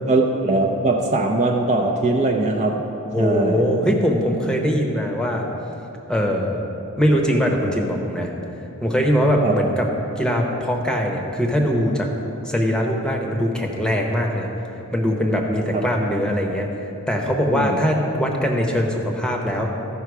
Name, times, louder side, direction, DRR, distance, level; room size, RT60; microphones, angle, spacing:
voice 1, 0.1-2.8 3.2-3.6 9.4-9.6 15.7-15.9 17.5-17.8, right 2 dB, 30° right, 0 dB, 0.6 m, -20 dB
voice 2, 3.1-5.5 6.1-6.6 7.0-8.3 8.8-9.8 10.2-12.1 12.4-14.5 14.9-16.7 17.1-19.9, equal, 5° left, 0 dB, 0.9 m, -21 dB
14.0 x 5.7 x 4.7 m, 3.0 s
head